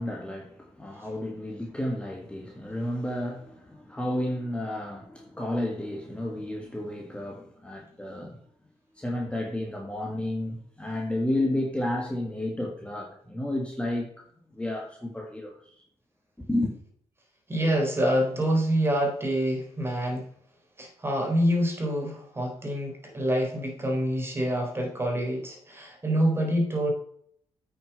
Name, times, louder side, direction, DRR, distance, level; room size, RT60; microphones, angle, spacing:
voice 1, 0.0-8.4 9.0-14.3 14.5-15.7 16.5-16.7, left 1 dB, 10° left, 1.7 m, -31 dB
voice 2, 17.5-20.3 20.8-26.9, equal, 20° right, 3.7 m, -26 dB
8.7 x 6.5 x 5.6 m
cardioid pair, 95°, 11 cm